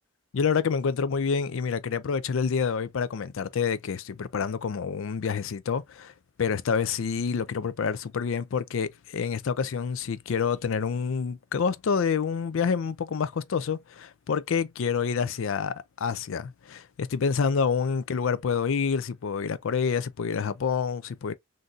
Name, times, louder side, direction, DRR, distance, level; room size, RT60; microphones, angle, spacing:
voice 1, 0.3-6.1 6.4-21.3, left 6 dB, 65° left, 0.4 m, -28 dB
3.8 x 2.6 x 2.5 m
head